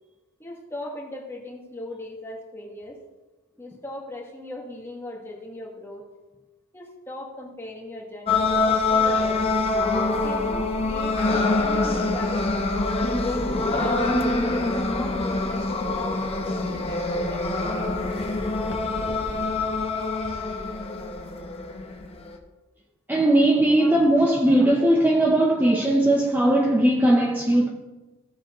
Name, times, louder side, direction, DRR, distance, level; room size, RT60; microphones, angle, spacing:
voice 1, 0.4-3.0 3.6-6.1 6.7-9.5 10.2-12.6 13.2-18.1 18.8-19.3 19.8-19.9 23.8-23.9 24.6-24.7 26.5-26.6, left 1 dB, 10° left, 1.5 m, -38 dB
sound 1, 8.3-22.4, left 3 dB, 25° left, 0.9 m, -25 dB
voice 2, 23.1-27.7, right 1 dB, 10° right, 0.7 m, -19 dB
15.5 x 6.9 x 3.0 m
head